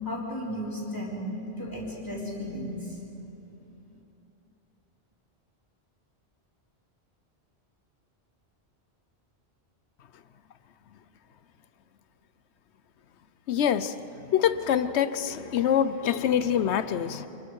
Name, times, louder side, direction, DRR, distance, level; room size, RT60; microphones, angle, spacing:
voice 1, 0.0-3.2 3.9-4.0, equal, 20° left, -4 dB, 3.9 m, -35 dB
voice 2, 13.5-13.9 14.3-17.3, left 9 dB, 85° left, 13 dB, 1.0 m, -25 dB
28.0 x 21.5 x 4.8 m, 2.9 s
omnidirectional pair, 1.1 m